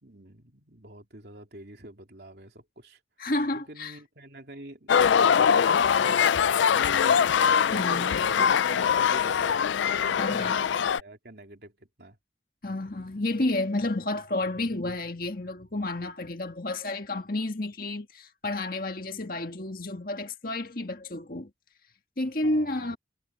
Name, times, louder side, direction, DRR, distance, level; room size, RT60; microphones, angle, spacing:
voice 1, 0.0-3.0 3.5-7.2 7.7-9.7 9.9-12.2 22.4-23.0, right 1 dB, 60° right, 3.0 m, -46 dB
voice 2, 3.2-4.0 7.7-8.2 10.2-10.7 12.6-21.5 22.2-23.0, left 2 dB, 50° left, 1.8 m, -31 dB
sound 1, 4.9-11.0, left 7 dB, 90° left, 0.4 m, -22 dB
head